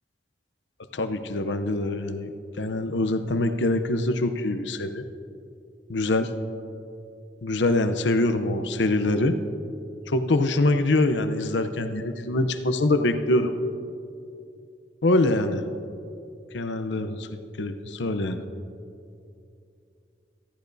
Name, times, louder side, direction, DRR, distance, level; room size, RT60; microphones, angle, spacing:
voice 1, 0.9-5.0 5.9-6.3 7.4-9.4 10.1-13.6 15.0-15.6 16.5-17.3 17.6-18.4, left 2 dB, 80° left, 8 dB, 0.7 m, -24 dB
18.5 x 14.0 x 2.7 m, 2.6 s
head